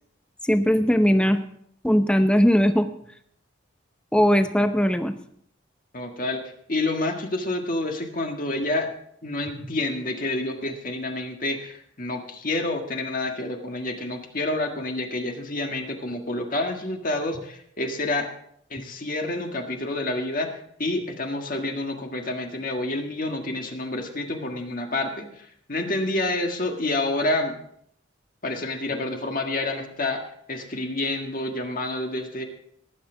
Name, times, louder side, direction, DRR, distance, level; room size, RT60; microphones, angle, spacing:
voice 1, 0.4-1.4 1.8-2.9 4.1-5.1, equal, 5° left, 8 dB, 0.7 m, -19 dB
voice 2, 5.9-6.4 6.7-8.9 9.2-18.3 18.7-27.6 28.4-30.2 30.5-32.5, left 2 dB, 45° left, 3 dB, 1.7 m, -28 dB
19.5 x 8.5 x 3.9 m, 0.68 s
head